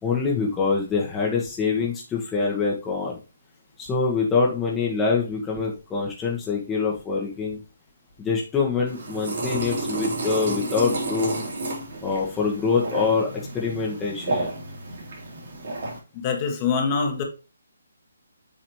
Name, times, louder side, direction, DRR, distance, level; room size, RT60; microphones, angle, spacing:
voice 1, 0.0-3.2 3.8-7.6 8.2-11.4 12.0-13.3 13.5-14.5, left 5 dB, 10° left, -3 dB, 1.2 m, -25 dB
sound 1, 8.9-16.0, right 2 dB, 55° right, 3.0 m, -31 dB
voice 2, 16.1-17.2, left 5 dB, 30° left, 3 dB, 1.4 m, -24 dB
7.5 x 4.0 x 3.1 m, 0.31 s
figure-of-eight pair, 145°, 0 cm